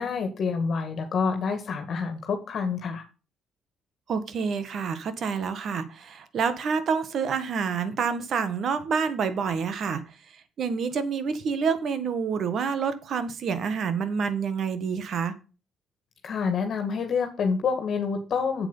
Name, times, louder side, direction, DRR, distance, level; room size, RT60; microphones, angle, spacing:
voice 1, 0.0-3.0 16.2-18.7, left 5 dB, 60° left, 1.9 m, -27 dB
voice 2, 4.1-15.3, right 6 dB, 60° right, 1.7 m, -28 dB
8.1 x 7.7 x 5.5 m
cardioid pair, 90°, 0 cm